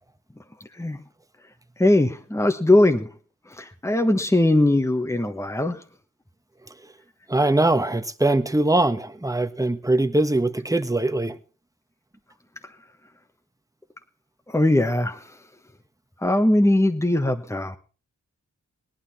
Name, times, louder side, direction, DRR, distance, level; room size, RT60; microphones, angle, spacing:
voice 1, 1.8-3.1 3.6-5.8 14.5-15.2 16.2-17.8, left 1 dB, 10° left, 5 dB, 1.3 m, -20 dB
voice 2, 7.3-11.4, right 2 dB, 10° right, 8 dB, 1.3 m, -22 dB
18.0 x 11.5 x 4.4 m, 0.38 s
cardioid pair, 50°, 32 cm